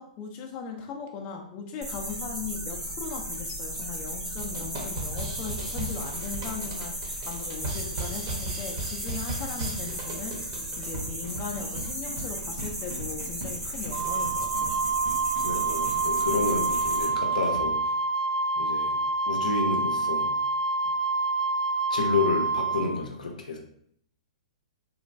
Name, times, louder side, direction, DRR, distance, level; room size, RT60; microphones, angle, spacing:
voice 1, 0.0-14.8, left 5 dB, 30° left, 1 dB, 0.4 m, -38 dB
sound 1, 1.8-17.1, right 1 dB, 10° right, 0.7 m, -35 dB
sound 2, 4.4-17.7, right 1 dB, 50° right, 0.8 m, -38 dB
Wind instrument woodwind instrument, 13.9-22.9, right 3 dB, 80° right, 0.4 m, -27 dB
voice 2, 15.4-17.9 18.6-18.9 19.3-20.3 21.9-23.6, left 3 dB, 85° left, 2 dB, 0.6 m, -30 dB
3.0 x 2.1 x 2.5 m, 0.67 s
hypercardioid pair, 135°, 4 cm